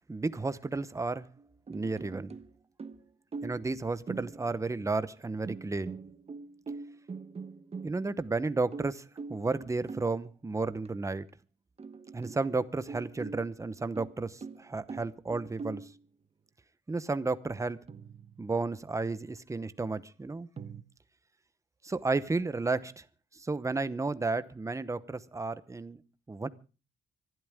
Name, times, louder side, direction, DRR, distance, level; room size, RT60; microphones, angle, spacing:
voice 1, 0.1-1.3 1.7-2.4 3.4-6.0 7.8-11.3 12.1-15.9 16.9-17.8 18.4-20.5 21.8-23.0 23.3-26.0 26.3-26.5, right 3 dB, 15° right, 0.9 m, -32 dB
sound 1, 1.4-2.5 2.8-3.8 4.1-4.7 5.4-8.3 8.7-10.2 10.8-10.9 11.3-11.4 11.8-12.5 12.9-16.0 17.9-18.6 20.6-20.8, right 4 dB, 30° right, 1.1 m, -43 dB
25.5 x 12.5 x 3.6 m
cardioid pair, 135°, 21 cm